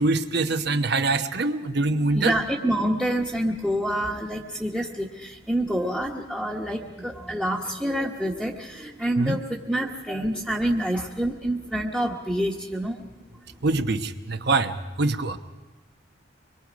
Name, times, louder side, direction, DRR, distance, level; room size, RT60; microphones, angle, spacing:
voice 1, 0.0-2.4 9.2-9.4 13.6-14.7 15.0-15.4, right 3 dB, 60° right, 8 dB, 1.0 m, -24 dB
voice 2, 2.1-13.1, right 1 dB, 5° right, -4 dB, 1.2 m, -27 dB
25.0 x 22.0 x 5.2 m, 1.2 s
head